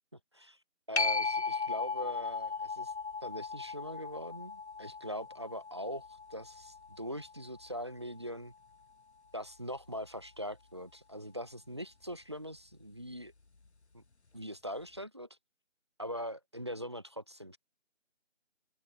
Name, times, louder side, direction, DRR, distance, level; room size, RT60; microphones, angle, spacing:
voice 1, 0.9-2.9 3.2-8.5 9.3-13.3 13.9-14.0 14.3-15.4 16.0-17.6, equal, 20° right, 1.1 m, -42 dB
sound 1, 1.0-8.1 13.7-13.8, left 4 dB, 60° left, 1.0 m, -37 dB
figure-of-eight pair, 165°, 38 cm